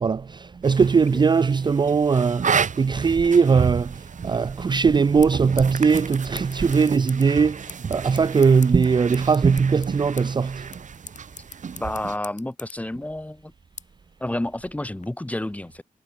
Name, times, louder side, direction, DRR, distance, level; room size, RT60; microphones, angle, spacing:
voice 1, 0.0-2.5 2.8-3.9 4.2-7.6 7.9-10.6, right 5 dB, 30° right, 0.4 m, -19 dB
sound 1, 0.6-12.2, right 6 dB, 60° right, 2.8 m, -32 dB
sound 2, 4.6-15.1, left 6 dB, 60° left, 4.7 m, -46 dB
voice 2, 11.8-13.5 14.2-15.8, left 1 dB, 10° left, 1.4 m, -30 dB
wide cardioid pair, 105°, 14 cm